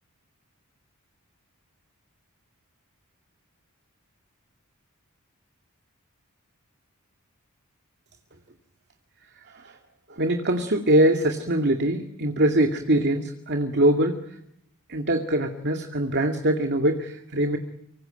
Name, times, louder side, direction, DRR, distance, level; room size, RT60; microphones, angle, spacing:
voice 1, 9.5-9.8 10.1-14.2 14.9-17.6, right 1 dB, 50° right, 5 dB, 2.4 m, -23 dB
25.5 x 24.5 x 9.1 m, 0.72 s
head